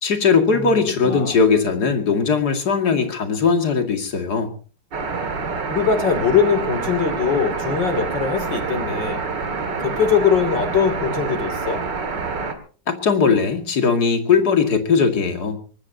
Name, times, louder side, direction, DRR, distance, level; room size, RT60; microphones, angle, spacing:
voice 1, 0.0-4.5 12.9-15.6, left 5 dB, 60° left, 6 dB, 2.8 m, -19 dB
voice 2, 1.0-1.4 5.7-9.3 9.8-11.8, left 6 dB, 85° left, 9 dB, 3.5 m, -21 dB
sound 1, 4.9-12.5, right 4 dB, 75° right, 2.9 m, -27 dB
23.0 x 20.5 x 2.8 m, 0.40 s
omnidirectional pair, 1.9 m